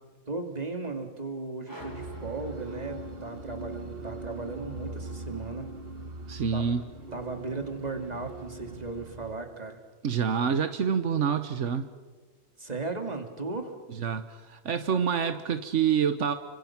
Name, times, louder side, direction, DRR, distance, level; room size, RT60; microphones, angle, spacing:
voice 1, 0.3-5.7 6.5-6.6 7.1-9.8 12.6-13.7, right 3 dB, 35° right, 5 dB, 2.6 m, -36 dB
sound 1, 1.7-3.4, equal, 15° left, 4.4 m, -48 dB
sound 2, 1.8-9.4, right 2 dB, 55° right, 1.7 m, -41 dB
voice 2, 6.3-6.8 10.0-11.9 14.0-14.2 14.5-16.3, right 7 dB, 80° right, 9 dB, 1.4 m, -27 dB
29.5 x 25.0 x 6.0 m, 1.4 s
omnidirectional pair, 1.2 m